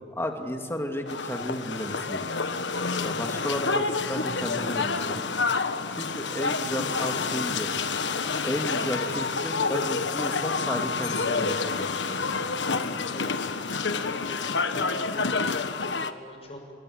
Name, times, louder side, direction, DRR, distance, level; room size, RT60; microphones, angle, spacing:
voice 1, 0.0-2.3 3.0-7.7 8.4-12.4, equal, 15° left, 3 dB, 2.5 m, -33 dB
sound 1, 1.1-16.1, left 4 dB, 90° left, 1.3 m, -28 dB
voice 2, 13.6-15.3 15.9-16.6, left 1 dB, 35° left, 2 dB, 6.0 m, -45 dB
28.0 x 23.0 x 8.1 m, 2.2 s
head